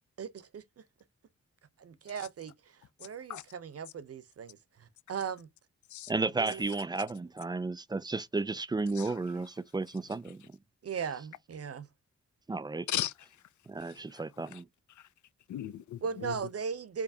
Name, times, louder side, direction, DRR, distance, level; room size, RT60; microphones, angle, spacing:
voice 1, 0.2-0.8 1.8-5.5 6.3-6.6 10.8-11.8 16.0-17.0, right 6 dB, 55° right, 0.7 m, -38 dB
voice 2, 6.1-10.5 12.5-12.9 13.7-14.7, right 3 dB, 15° right, 0.3 m, -33 dB
voice 3, 8.9-9.5 10.1-10.5 12.9-13.5 13.8-14.6 14.9-15.1 15.5-16.5, left 12 dB, 85° left, 0.5 m, -39 dB
4.8 x 2.8 x 2.7 m
wide cardioid pair, 90°, 29 cm